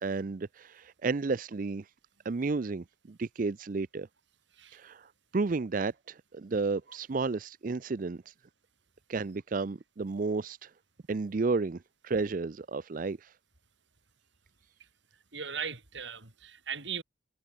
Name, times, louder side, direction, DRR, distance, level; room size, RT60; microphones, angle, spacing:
voice 1, 0.0-1.8 2.2-4.1 4.7-8.3 9.1-10.7 11.1-13.3, right 4 dB, 45° right, 0.4 m, -32 dB
voice 2, 15.3-17.0, right 6 dB, 70° right, 4.4 m, -38 dB
head